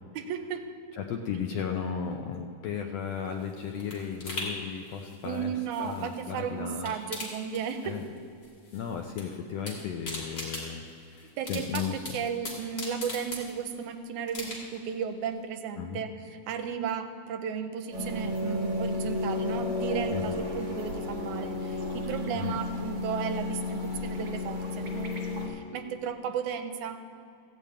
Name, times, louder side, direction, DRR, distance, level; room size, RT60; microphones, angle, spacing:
voice 1, 0.2-0.6 5.3-8.0 11.4-27.0, right 7 dB, 80° right, 8 dB, 2.1 m, -34 dB
voice 2, 1.0-6.9 7.8-8.0 8.7-12.0 15.8-16.0 20.1-20.5 22.3-22.6, left 7 dB, 75° left, 3 dB, 1.5 m, -35 dB
sound 1, 3.1-6.4 6.7-8.2 8.4-9.2 9.5-13.9 14.3-14.9 15.3-15.4, left 2 dB, 35° left, 2.9 m, -40 dB
sound 2, 17.9-25.5, left 2 dB, 40° right, 2.1 m, -32 dB
14.5 x 5.3 x 8.6 m, 2.6 s
omnidirectional pair, 3.5 m